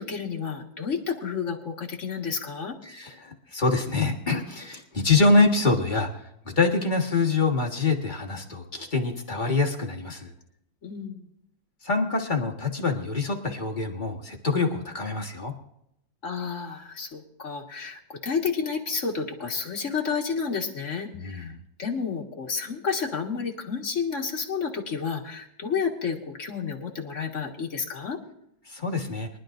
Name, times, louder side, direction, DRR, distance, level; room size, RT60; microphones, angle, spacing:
voice 1, 0.0-2.8 10.8-11.2 16.2-21.5 21.8-28.2, left 5 dB, 45° left, 0 dB, 1.9 m, -30 dB
voice 2, 2.8-6.1 6.4-10.3 11.8-15.5 21.1-21.6 28.7-29.3, left 3 dB, 25° left, 1 dB, 1.6 m, -25 dB
23.5 x 11.5 x 2.6 m, 0.75 s
omnidirectional pair, 2.0 m